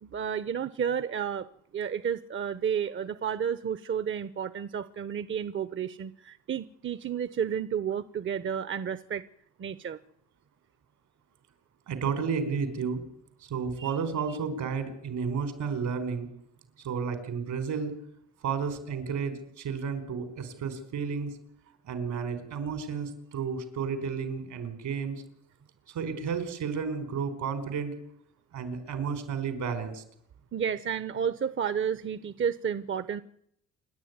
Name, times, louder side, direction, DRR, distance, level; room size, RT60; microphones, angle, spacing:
voice 1, 0.0-1.5 1.7-9.2 9.6-10.0 13.8-14.0 30.5-33.2, right 8 dB, 40° right, 14 dB, 0.9 m, -31 dB
voice 2, 11.9-13.0 13.4-16.3 16.8-17.9 18.4-21.3 21.8-25.2 25.9-27.9 28.5-30.0, right 6 dB, 75° right, 10 dB, 4.7 m, -32 dB
28.0 x 11.0 x 9.6 m, 0.72 s
cardioid pair, 90°, 30 cm